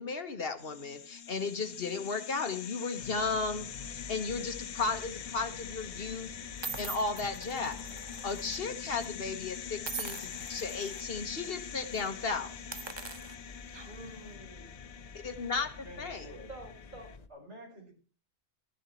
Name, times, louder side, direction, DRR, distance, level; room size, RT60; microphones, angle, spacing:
voice 1, 0.0-7.8 8.2-12.5 15.2-16.3, left 4 dB, 60° left, 8 dB, 1.5 m, -35 dB
sound 1, 0.6-17.2, left 8 dB, 90° left, 1.1 m, -44 dB
sound 2, 3.0-17.3, left 4 dB, 40° left, 0.9 m, -50 dB
sound 3, 4.9-5.2 6.0-6.1 6.6-8.6 8.8-9.0 9.8-11.0 11.4-11.6 11.9-12.1 12.6-14.1, right 5 dB, 30° right, 0.7 m, -43 dB
voice 2, 13.3-14.9 16.5-17.1, right 1 dB, 45° right, 2 dB, 4.2 m, -49 dB
voice 3, 15.8-16.5 17.3-17.9, left 1 dB, 90° right, 0 dB, 5.6 m, -48 dB
13.5 x 11.0 x 4.3 m, 0.36 s
omnidirectional pair, 1.1 m